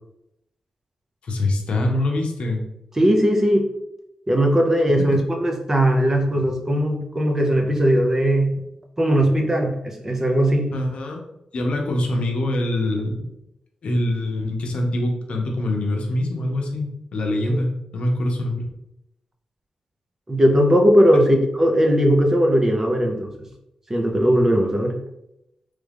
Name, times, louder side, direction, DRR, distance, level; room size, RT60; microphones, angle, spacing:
voice 1, 1.2-2.6 10.7-11.2 11.5-13.3 13.8-18.7, left 1 dB, 70° left, 1 dB, 0.7 m, -24 dB
voice 2, 3.0-3.7 4.3-8.5 9.0-10.7 17.5-17.6 20.3-23.3 23.9-24.9, equal, 20° right, 2 dB, 0.6 m, -18 dB
3.2 x 2.4 x 3.4 m, 0.85 s
cardioid pair, 90°, 2 cm